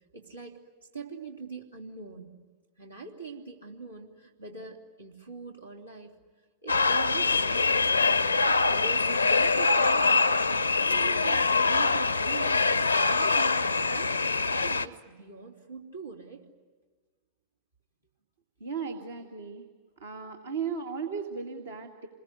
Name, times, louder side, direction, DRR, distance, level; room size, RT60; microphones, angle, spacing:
voice 1, 0.1-0.6 0.9-2.4 2.8-6.1 6.6-8.3 8.7-10.4 10.8-14.1 14.4-16.5, right 4 dB, 85° right, -1 dB, 3.3 m, -43 dB
sound 1, 6.7-14.8, left 4 dB, 80° left, 0.8 m, -24 dB
voice 2, 18.6-19.7 20.0-22.1, right 6 dB, 70° right, 1 dB, 2.0 m, -36 dB
28.0 x 21.5 x 9.7 m, 1.5 s
figure-of-eight pair, 90°, 0 cm